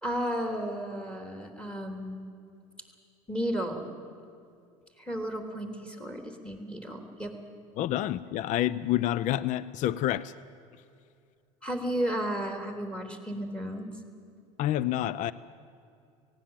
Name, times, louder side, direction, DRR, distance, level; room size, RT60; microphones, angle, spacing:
voice 1, 0.0-2.3 3.3-3.8 5.0-7.3 11.6-13.9, equal, 5° left, 5 dB, 3.4 m, -33 dB
voice 2, 7.8-10.3 14.6-15.3, left 13 dB, 45° left, 19 dB, 0.5 m, -28 dB
18.0 x 17.0 x 9.0 m, 2.4 s
hypercardioid pair, 75°, 18 cm